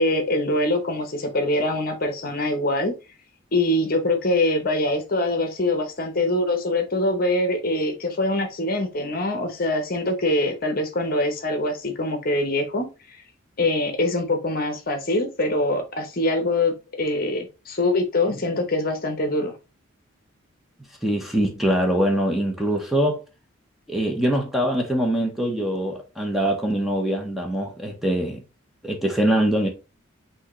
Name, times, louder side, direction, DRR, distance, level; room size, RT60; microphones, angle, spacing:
voice 1, 0.0-2.9 3.5-13.2 13.6-19.5, left 1 dB, 45° left, 0.8 m, -24 dB
voice 2, 21.0-23.2 23.9-28.4 28.8-29.7, right 1 dB, ahead, 0.8 m, -23 dB
6.2 x 2.7 x 3.0 m
head